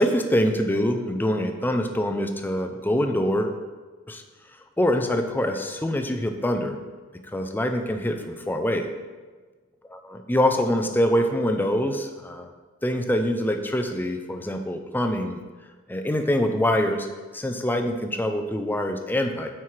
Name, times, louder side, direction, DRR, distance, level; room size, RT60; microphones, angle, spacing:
voice 1, 0.0-3.5 4.1-4.2 4.8-6.8 7.3-8.9 9.9-12.5 12.8-15.4 15.9-17.1 17.3-19.5, equal, 10° left, 5 dB, 0.4 m, -24 dB
9.2 x 4.6 x 3.2 m, 1.4 s
head